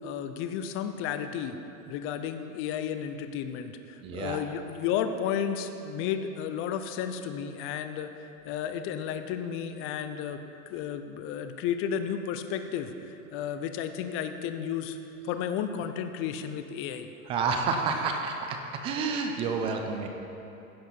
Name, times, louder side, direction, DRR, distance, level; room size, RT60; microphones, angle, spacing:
voice 1, 0.0-1.6 1.9-8.1 8.4-10.4 10.7-15.0 15.2-17.1, left 8 dB, 30° left, 8 dB, 0.6 m, -33 dB
voice 2, 4.0-4.4 17.3-20.1, right 4 dB, 15° right, 4 dB, 0.3 m, -29 dB
16.0 x 5.9 x 4.4 m, 2.9 s
hypercardioid pair, 120°, 44 cm